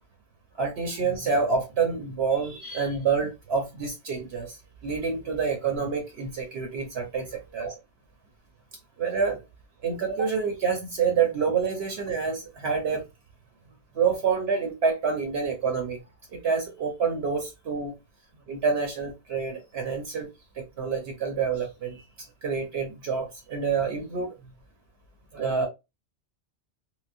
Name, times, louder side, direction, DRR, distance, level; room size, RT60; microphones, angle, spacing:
voice 1, 0.6-4.6 4.8-7.3 7.5-7.8 9.0-9.4 9.8-13.1 13.9-16.0 16.3-17.9 18.5-22.0 22.4-24.3 25.3-25.7, right 5 dB, 70° right, 0.9 m, -27 dB
3.9 x 2.1 x 2.4 m
omnidirectional pair, 1.2 m